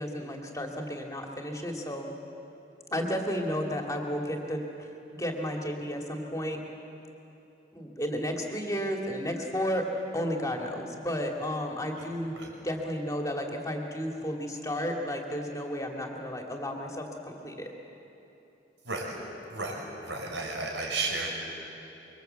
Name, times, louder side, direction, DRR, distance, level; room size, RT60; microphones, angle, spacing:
voice 1, 0.0-2.1 2.9-4.9 5.1-6.6 7.7-9.9 10.1-12.3 12.6-17.7, equal, 20° left, 1 dB, 2.5 m, -32 dB
voice 2, 18.8-19.1 19.5-21.3, right 3 dB, 80° right, 0 dB, 5.8 m, -33 dB
25.5 x 24.0 x 8.1 m, 2.9 s
head